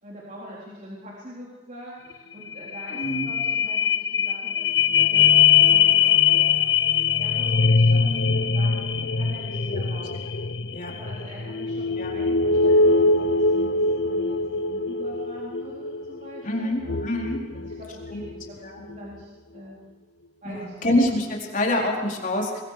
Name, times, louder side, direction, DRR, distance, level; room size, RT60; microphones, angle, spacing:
voice 1, 0.0-5.3 5.6-6.6 7.2-10.1 10.9-14.4 14.7-17.0 17.5-19.8 20.4-20.9, equal, 45° right, -5 dB, 4.0 m, -43 dB
sound 1, 2.1-2.2 2.5-18.4 18.9-19.0, left 5 dB, 70° left, 0.8 m, -22 dB
voice 2, 2.9-3.3 10.7-10.9 12.0-12.1 16.4-17.4 18.1-18.2 18.6-18.8 20.4-22.6, left 1 dB, 45° left, -1 dB, 4.3 m, -26 dB
23.5 x 22.5 x 5.0 m, 1.2 s
head